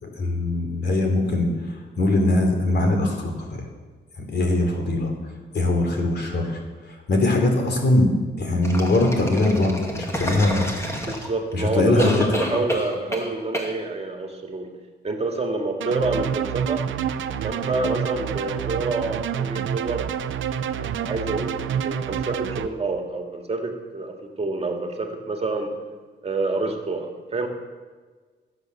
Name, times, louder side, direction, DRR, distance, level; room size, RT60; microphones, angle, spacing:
voice 1, 0.0-1.5 2.0-3.3 3.6-3.7 4.2-5.1 5.5-6.6 7.1-10.7 11.5-12.2, left 2 dB, 60° left, 3 dB, 3.2 m, -21 dB
sound 1, 8.6-11.5 12.0-13.3 13.5-13.7, equal, 15° left, 2.5 m, -28 dB
voice 2, 11.1-14.7 15.0-16.8 17.4-20.1 20.6-25.7 26.2-27.5, right 3 dB, 30° right, 3 dB, 2.1 m, -28 dB
sound 2, 15.8-22.7, right 8 dB, 90° right, 0.7 m, -28 dB
19.5 x 8.3 x 6.8 m, 1.4 s
cardioid pair, 100°, 20 cm